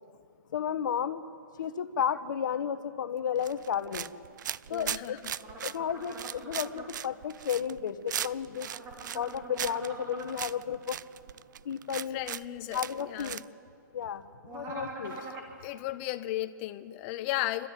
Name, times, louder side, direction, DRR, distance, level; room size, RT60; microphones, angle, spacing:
voice 1, 0.5-1.2 1.6-4.1 4.7-5.2 5.6-8.7 9.1-11.0 11.6-12.2 12.7-13.4 13.9-14.2 14.5-15.3, left 8 dB, 70° left, 11 dB, 1.3 m, -33 dB
sound 1, 3.4-13.4, right 10 dB, 65° right, 0.5 m, -38 dB
voice 2, 4.7-5.3 12.1-13.4 15.6-17.7, left 15 dB, 35° left, 13 dB, 0.9 m, -35 dB
sound 2, 5.4-6.9 8.6-10.3 14.4-15.5, right 3 dB, 25° right, 3.3 m, -43 dB
29.0 x 13.5 x 9.2 m, 2.4 s
hypercardioid pair, 145°, 11 cm